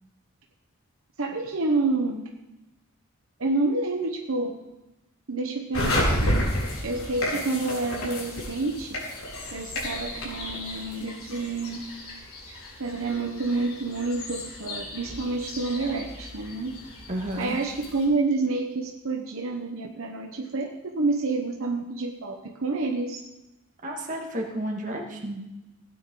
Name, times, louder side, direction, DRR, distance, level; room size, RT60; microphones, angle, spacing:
voice 1, 1.2-2.3 3.4-4.6 5.3-6.4 6.8-9.0 9.5-11.8 12.5-16.7 17.4-22.3 22.6-23.2, right 3 dB, 70° right, 2 dB, 1.1 m, -28 dB
sound 1, 5.7-18.0, left 1 dB, 85° left, 4.2 m, -32 dB
voice 2, 17.1-17.6 23.8-25.4, right 1 dB, 35° right, 0 dB, 1.9 m, -31 dB
16.5 x 9.3 x 3.9 m, 0.98 s
head